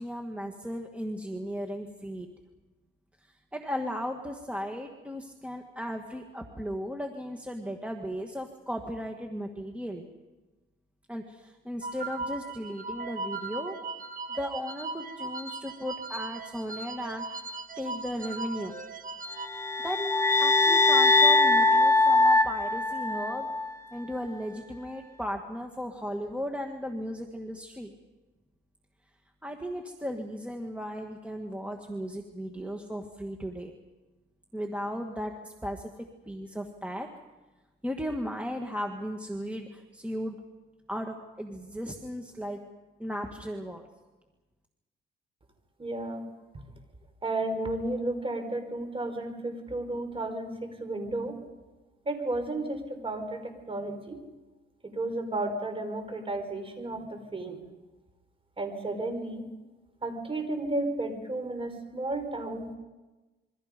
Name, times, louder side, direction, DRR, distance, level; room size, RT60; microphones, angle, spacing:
voice 1, 0.0-2.3 3.2-10.1 11.1-13.8 14.3-17.4 17.8-18.7 19.8-20.0 20.4-23.5 23.9-27.9 29.4-33.7 34.5-35.9 36.3-37.1 37.8-40.4 40.9-42.6 43.0-43.9, equal, 5° right, 3 dB, 2.0 m, -36 dB
sound 1, 11.8-19.5, right 3 dB, 45° right, 2.0 m, -38 dB
sound 2, 19.5-23.7, left 3 dB, 15° left, 0.9 m, -22 dB
voice 2, 45.8-46.2 47.2-51.3 52.0-53.4 53.7-54.2 54.8-57.6 58.6-59.4 60.0-62.7, right 2 dB, 25° right, 6 dB, 5.0 m, -33 dB
27.5 x 23.5 x 5.3 m, 1.2 s
cardioid pair, 90°, 20 cm